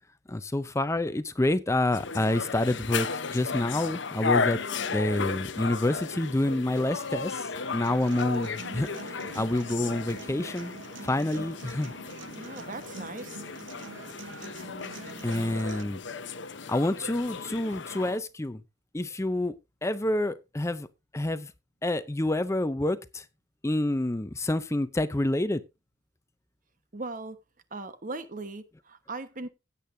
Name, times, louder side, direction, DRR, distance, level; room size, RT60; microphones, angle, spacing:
voice 1, 0.3-4.6 4.9-10.7 11.0-11.9 15.2-16.0 16.7-18.6 18.9-19.6 19.8-20.9 21.1-21.5 21.8-23.3 23.6-25.6, left 1 dB, 15° left, 0.5 m, -28 dB
sound 1, 1.9-18.2, left 5 dB, 65° left, 0.9 m, -35 dB
Human voice / Acoustic guitar, 7.8-15.8, right 3 dB, 70° right, 1.1 m, -45 dB
voice 2, 12.3-13.4 26.9-27.4 27.7-29.5, right 3 dB, 40° right, 1.3 m, -39 dB
16.5 x 8.5 x 2.7 m
head